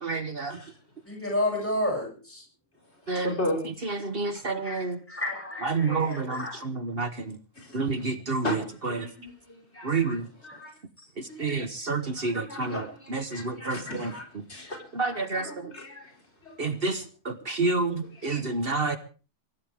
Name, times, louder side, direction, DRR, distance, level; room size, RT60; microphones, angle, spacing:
voice 1, 0.0-0.6 3.1-3.3 3.8-5.0 5.6-7.4 7.7-8.6 8.8-9.1 9.8-10.3 11.2-14.1 14.9-15.7 16.6-19.0, right 3 dB, 50° right, 9 dB, 1.4 m, -29 dB
voice 2, 1.1-2.4 4.6-6.6, left 1 dB, 10° left, -1 dB, 7.3 m, -31 dB
voice 3, 3.1-3.6 4.1-4.5 7.6-7.8 8.4-10.7 11.3-11.5 12.2-16.1 16.4-16.7 18.2-18.3, left 1 dB, 60° left, 0 dB, 5.3 m, -37 dB
24.0 x 15.5 x 3.6 m, 0.37 s
omnidirectional pair, 1.3 m